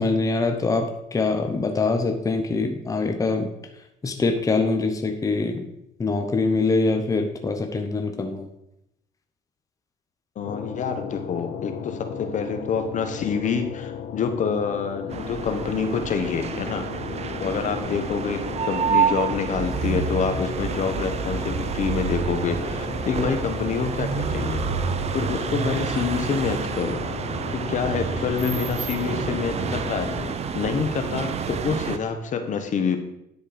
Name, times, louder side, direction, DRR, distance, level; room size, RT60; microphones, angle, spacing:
voice 1, 0.0-3.5 4.0-5.6 6.0-8.5, left 3 dB, 20° left, 5 dB, 0.9 m, -24 dB
sound 1, 10.4-30.3, left 8 dB, 65° left, 0.7 m, -36 dB
voice 2, 10.4-16.8 17.4-18.4 18.7-24.6 25.1-27.0 27.5-30.1 30.5-33.0, left 6 dB, 50° left, 7 dB, 1.0 m, -27 dB
sound 2, 15.1-32.0, right 6 dB, 40° right, 0.6 m, -28 dB
10.0 x 4.4 x 5.0 m, 0.82 s
cardioid pair, 110°, 17 cm